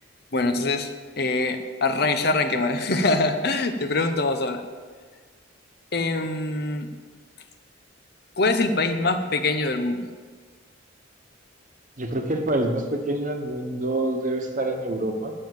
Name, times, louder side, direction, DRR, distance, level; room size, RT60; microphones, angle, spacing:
voice 1, 0.3-4.6 5.9-6.9 8.4-10.1, left 2 dB, 55° left, 8 dB, 0.8 m, -24 dB
voice 2, 12.0-15.3, right 1 dB, 40° right, 4 dB, 1.2 m, -26 dB
9.5 x 7.3 x 7.8 m, 1.5 s
head